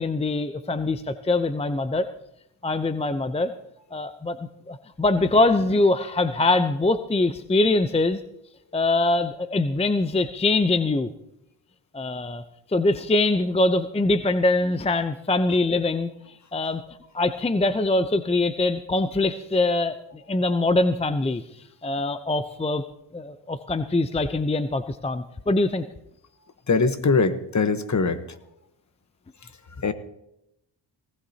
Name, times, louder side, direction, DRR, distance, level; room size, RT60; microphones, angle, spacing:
voice 1, 0.0-2.1 2.6-3.5 3.9-4.4 4.7-8.2 8.7-11.1 11.9-12.4 12.7-16.1 16.5-16.8 17.1-21.4 21.8-22.8 23.1-25.8, left 2 dB, 15° left, 11 dB, 0.6 m, -23 dB
voice 2, 26.7-28.2 29.8-29.9, left 4 dB, 35° left, 11 dB, 1.2 m, -21 dB
18.5 x 16.0 x 2.8 m, 0.82 s
cardioid pair, 65°, 47 cm